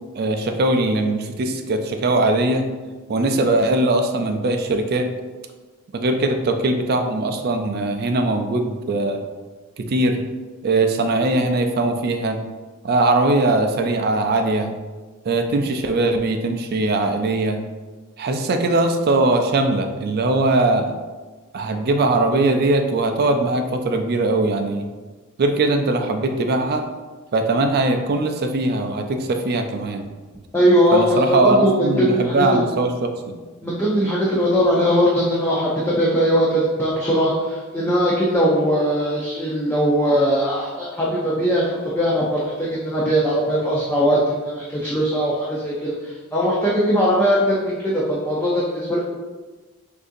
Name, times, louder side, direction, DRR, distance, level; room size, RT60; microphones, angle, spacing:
voice 1, 0.1-2.7 3.1-5.1 5.9-9.2 9.8-10.2 10.6-12.4 12.8-14.7 15.2-17.6 18.2-20.9 21.5-24.9 25.4-26.8 27.3-30.0 30.9-33.4, right 2 dB, 45° right, 5 dB, 0.4 m, -20 dB
voice 2, 30.5-32.6 33.6-49.0, equal, 10° left, -6 dB, 0.5 m, -20 dB
6.3 x 2.7 x 2.6 m, 1.3 s
head